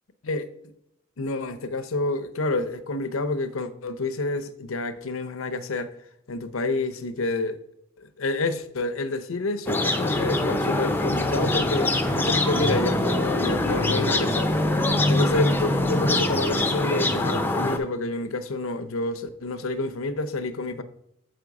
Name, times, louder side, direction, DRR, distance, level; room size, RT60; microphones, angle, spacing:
voice 1, 1.2-6.0 6.3-7.6 8.0-14.5 15.1-20.8, left 2 dB, 85° left, 0.7 m, -28 dB
sound 1, 9.7-17.8, left 1 dB, 10° left, 0.5 m, -24 dB
7.7 x 5.1 x 4.7 m
head